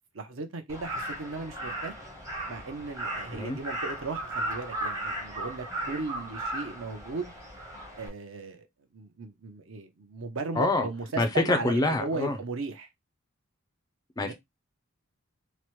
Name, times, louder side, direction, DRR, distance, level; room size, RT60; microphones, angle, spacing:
voice 1, 0.1-2.0 2.5-7.3 8.0-8.7 8.9-12.9 14.2-14.3, right 3 dB, 60° right, 0.6 m, -36 dB
Crow, 0.7-8.1, right 1 dB, 15° right, 0.7 m, -36 dB
voice 2, 10.6-10.9 11.2-12.4 14.2-14.3, left 2 dB, 15° left, 0.3 m, -26 dB
2.9 x 2.1 x 3.0 m
head